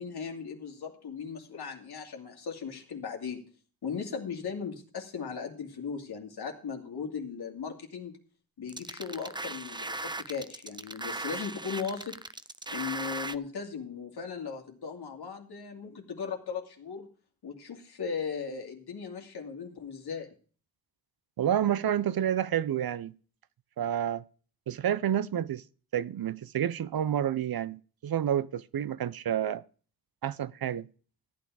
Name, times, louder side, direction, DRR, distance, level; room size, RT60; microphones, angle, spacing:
voice 1, 0.0-3.4 3.8-8.2 8.6-12.2 12.7-17.1 17.4-20.3, left 6 dB, 85° left, 2.6 m, -37 dB
sound 1, 8.7-13.4, right 2 dB, 10° right, 0.5 m, -38 dB
voice 2, 21.4-23.1 23.8-24.2 24.7-25.6 25.9-29.6 30.2-30.9, right 10 dB, 70° right, 0.7 m, -29 dB
14.0 x 9.4 x 4.8 m
cardioid pair, 70°, 38 cm